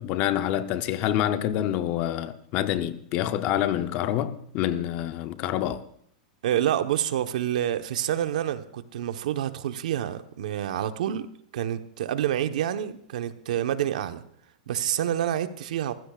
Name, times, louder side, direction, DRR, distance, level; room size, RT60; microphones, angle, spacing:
voice 1, 0.0-5.8, left 11 dB, 30° left, 0.7 m, -27 dB
voice 2, 6.4-14.2 14.7-15.9, right 11 dB, 70° right, 1.1 m, -28 dB
25.5 x 15.5 x 2.4 m
supercardioid pair, 170°, 4 cm